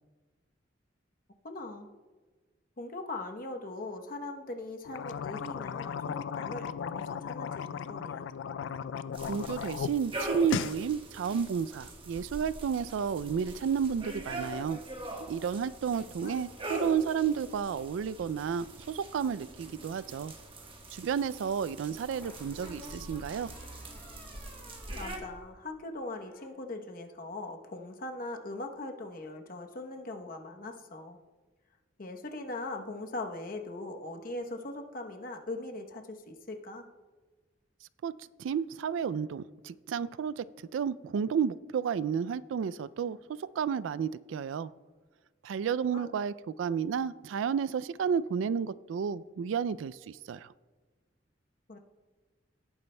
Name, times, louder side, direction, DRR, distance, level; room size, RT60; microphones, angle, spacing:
voice 1, 1.4-1.9 2.8-8.3 16.2-16.4 25.0-31.2 32.0-36.9 45.9-46.1 51.7-51.8, left 2 dB, 45° left, 4 dB, 0.9 m, -40 dB
sound 1, 4.8-9.9 10.2-10.8, left 7 dB, 75° left, 0.3 m, -36 dB
sound 2, 9.1-25.2, right 1 dB, 30° right, 1.2 m, -43 dB
voice 2, 9.3-14.8 15.3-20.3 20.9-23.5 38.0-38.1 38.4-40.4 40.7-44.7 45.4-50.5, right 7 dB, 85° right, 17 dB, 0.3 m, -31 dB
sound 3, 19.5-20.3 22.2-25.7 26.0-26.5, equal, 15° left, 2.2 m, -53 dB
17.5 x 9.4 x 2.2 m, 1.3 s
head